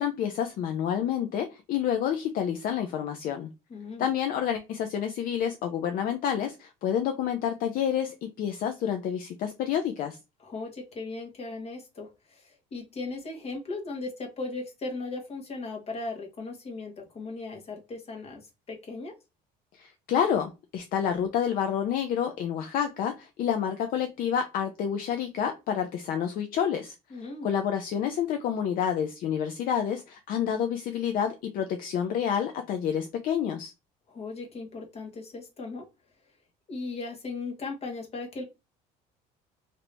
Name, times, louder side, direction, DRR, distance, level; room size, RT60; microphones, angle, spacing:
voice 1, 0.0-3.5 4.0-10.2 19.7-26.9 27.4-33.7, left 8 dB, 55° left, 0.5 m, -29 dB
voice 2, 3.7-4.1 10.4-19.1 27.1-27.5 34.1-35.9 36.7-38.4, left 3 dB, 35° left, 1.2 m, -37 dB
2.8 x 2.6 x 3.3 m
cardioid pair, 110°, 17 cm